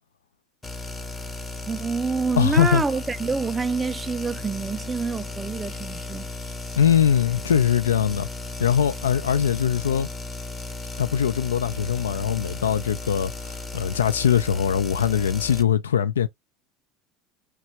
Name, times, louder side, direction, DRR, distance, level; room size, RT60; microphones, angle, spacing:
sound 1, 0.6-15.6, left 2 dB, 20° left, 0.6 m, -35 dB
voice 1, 1.6-6.3, right 4 dB, 20° right, 0.3 m, -27 dB
voice 2, 2.4-2.8 6.8-8.3 8.6-10.1 11.0-16.3, left 8 dB, 90° left, 0.3 m, -21 dB
2.9 x 2.3 x 2.9 m
hypercardioid pair, 80°, 0 cm